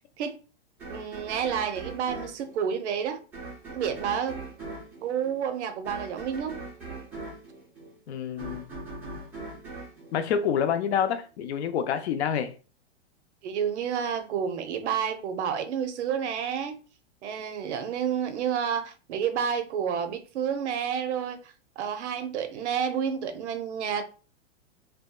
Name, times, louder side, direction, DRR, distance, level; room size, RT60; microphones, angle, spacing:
sound 1, 0.8-11.0, right 2 dB, 5° right, 0.3 m, -41 dB
voice 1, 0.9-3.2 3.7-4.4 5.0-6.6 13.4-16.8 17.2-21.4 21.8-24.0, right 8 dB, 80° right, 0.6 m, -30 dB
voice 2, 8.1-8.7 10.1-12.5, left 8 dB, 70° left, 0.5 m, -27 dB
2.7 x 2.2 x 2.2 m
supercardioid pair, 155°, 34 cm